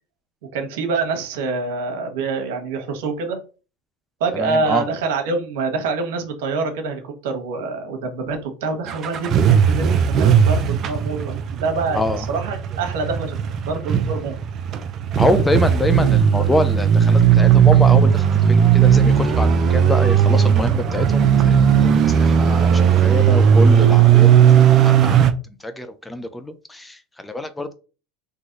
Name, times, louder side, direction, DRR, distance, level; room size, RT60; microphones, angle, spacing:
voice 1, 0.5-3.4 4.2-11.2 11.6-13.4 13.6-14.3, right 4 dB, 75° right, 1.2 m, -25 dB
voice 2, 4.3-4.9 11.9-12.3 15.1-21.9 22.1-24.3 24.8-25.3 25.6-27.7, left 1 dB, 10° left, 0.6 m, -25 dB
sound 1, 8.9-25.3, right 8 dB, 45° right, 0.6 m, -16 dB
4.0 x 3.0 x 3.9 m
supercardioid pair, 100°, 0 cm